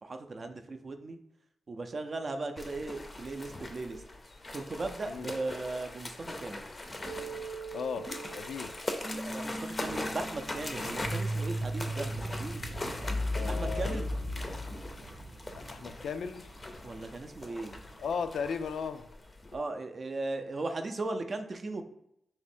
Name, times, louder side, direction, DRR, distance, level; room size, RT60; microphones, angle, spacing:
voice 1, 0.0-1.2 1.7-4.0 4.5-6.7 9.1-12.6 13.5-14.1 16.8-17.8 19.5-21.8, right 2 dB, 40° right, 6 dB, 0.5 m, -37 dB
sound 1, 2.6-19.6, left 2 dB, 25° left, 0.5 m, -41 dB
sound 2, 7.0-14.9, equal, 10° right, 0.9 m, -37 dB
voice 2, 7.7-8.1 8.3-8.7 13.3-14.0 15.7-16.5 18.0-19.1, left 6 dB, 85° left, 9 dB, 0.3 m, -36 dB
sound 3, 9.6-18.2, right 1 dB, 85° right, 0.7 m, -45 dB
3.6 x 3.0 x 4.3 m, 0.77 s
wide cardioid pair, 120°, 0 cm